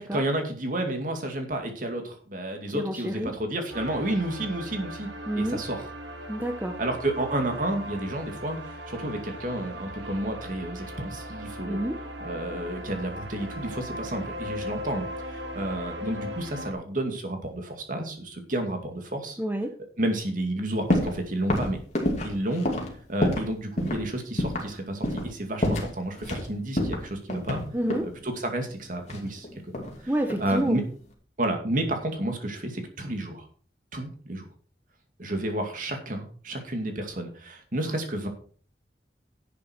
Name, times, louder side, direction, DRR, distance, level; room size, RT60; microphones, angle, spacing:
voice 1, 0.0-5.1 5.3-5.9 6.8-11.8 12.2-19.4 20.0-21.8 22.2-27.6 28.2-29.5 29.7-30.1 30.4-30.8 31.4-33.5 33.9-34.5 35.2-38.3, right 1 dB, 50° right, 4 dB, 2.4 m, -31 dB
voice 2, 2.7-3.3 5.3-5.6 6.3-6.7 11.7-12.0 19.4-19.7 27.7-28.1 30.1-30.8, right 1 dB, 10° right, 5 dB, 0.9 m, -28 dB
sound 1, 3.7-16.7, equal, 90° right, 1.9 m, -38 dB
sound 2, 20.9-21.2 21.5-23.5 23.8-24.0 24.4-24.7 25.0-25.3 25.6-26.5 26.8-28.1 29.1-30.0 30.3-30.7, left 1 dB, 40° left, 2.7 m, -27 dB
11.0 x 8.5 x 4.6 m, 0.43 s
head